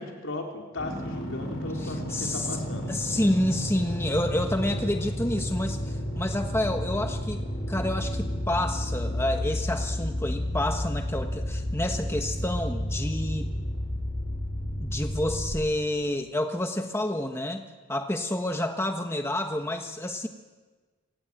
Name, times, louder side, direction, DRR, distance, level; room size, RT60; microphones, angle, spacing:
voice 1, 0.0-3.0, left 2 dB, 70° left, 2 dB, 4.3 m, -36 dB
sound 1, 0.8-15.5, equal, 45° left, 6.6 m, -31 dB
voice 2, 1.8-2.6 2.9-7.4 7.7-13.5 14.8-17.6 17.9-20.3, left 1 dB, 10° left, 5 dB, 1.2 m, -29 dB
28.0 x 18.5 x 8.9 m, 1.4 s
head